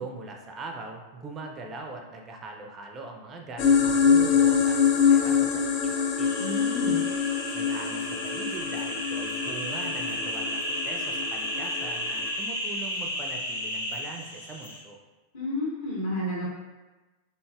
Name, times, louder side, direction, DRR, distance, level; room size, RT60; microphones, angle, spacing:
voice 1, 0.0-6.3 7.5-15.0, right 3 dB, 25° right, 3 dB, 0.4 m, -41 dB
sound 1, 3.6-12.3, left 6 dB, 40° left, 0.4 m, -25 dB
sound 2, 6.2-14.8, left 1 dB, 75° left, 0.8 m, -34 dB
voice 2, 6.4-7.0 15.3-16.5, left 1 dB, 60° left, -6 dB, 1.4 m, -31 dB
3.8 x 3.6 x 2.3 m, 1.2 s
figure-of-eight pair, 90°, 0 cm